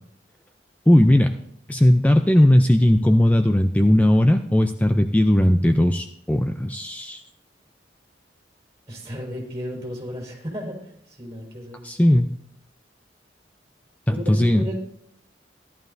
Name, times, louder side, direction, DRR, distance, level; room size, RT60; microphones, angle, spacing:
voice 1, 0.9-1.3 1.7-7.2 11.8-12.3 14.1-14.7, left 1 dB, 10° left, 6 dB, 0.4 m, -17 dB
voice 2, 8.9-11.8 14.1-14.7, equal, 20° right, -3 dB, 4.0 m, -34 dB
16.5 x 11.0 x 2.6 m, 0.72 s
head